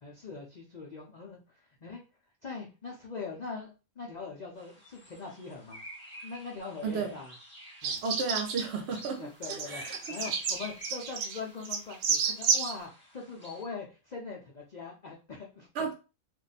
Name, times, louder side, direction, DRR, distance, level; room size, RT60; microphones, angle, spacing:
voice 1, 0.0-2.0 2.4-5.8 6.2-7.3 7.8-8.0 9.2-15.9, left 4 dB, 75° left, 0.4 m, -42 dB
sound 1, 4.6-13.6, equal, 5° left, 1.0 m, -50 dB
voice 2, 6.8-7.1 8.0-9.2 9.5-10.0 15.7-15.9, right 4 dB, 55° right, 0.8 m, -33 dB
sound 2, 7.8-8.6 8.9-9.1 9.4-12.7, right 6 dB, 85° right, 1.1 m, -30 dB
2.6 x 2.2 x 4.0 m
omnidirectional pair, 1.5 m